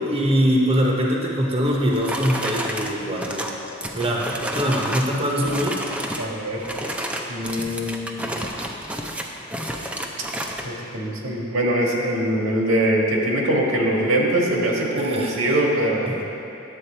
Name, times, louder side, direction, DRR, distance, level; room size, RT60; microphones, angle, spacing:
voice 1, 0.0-3.4 3.9-5.8 15.0-15.4 16.1-16.2, equal, 30° right, -2 dB, 0.8 m, -22 dB
sound 1, 1.6-5.2 5.4-6.3 6.6-10.7, equal, 5° right, 0.5 m, -30 dB
voice 2, 6.2-6.6 7.3-8.3 10.6-16.2, right 1 dB, 85° right, -1 dB, 1.5 m, -22 dB
10.0 x 7.6 x 4.4 m, 2.8 s
head